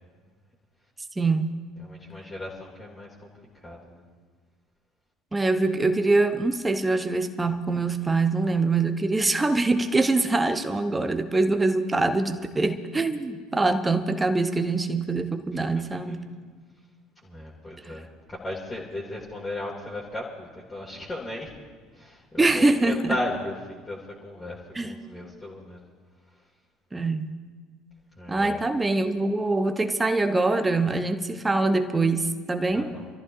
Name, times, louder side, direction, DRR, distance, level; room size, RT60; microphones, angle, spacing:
voice 1, 1.2-1.5 5.3-16.2 17.9-18.0 22.4-23.2 24.7-24.9 26.9-27.3 28.3-32.9, right 3 dB, 15° right, 8 dB, 0.9 m, -24 dB
voice 2, 1.8-4.0 15.6-16.1 17.2-21.5 21.9-24.6 24.8-25.8 28.2-28.6 32.7-33.1, left 1 dB, 20° left, -6 dB, 2.5 m, -36 dB
28.0 x 14.0 x 2.7 m, 1.5 s
figure-of-eight pair, 60°, 0 cm